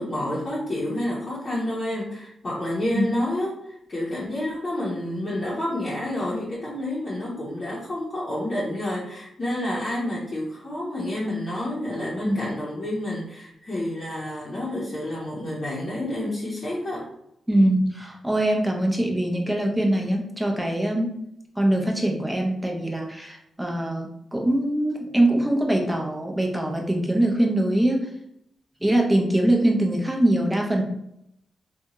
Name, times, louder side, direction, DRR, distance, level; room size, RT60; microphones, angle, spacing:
voice 1, 0.0-17.0, left 1 dB, 45° left, -7 dB, 0.8 m, -29 dB
voice 2, 17.5-21.1 21.6-28.0 28.8-30.8, right 1 dB, 10° right, 0 dB, 0.6 m, -23 dB
2.7 x 2.3 x 2.8 m, 0.80 s
cardioid pair, 70°, 0 cm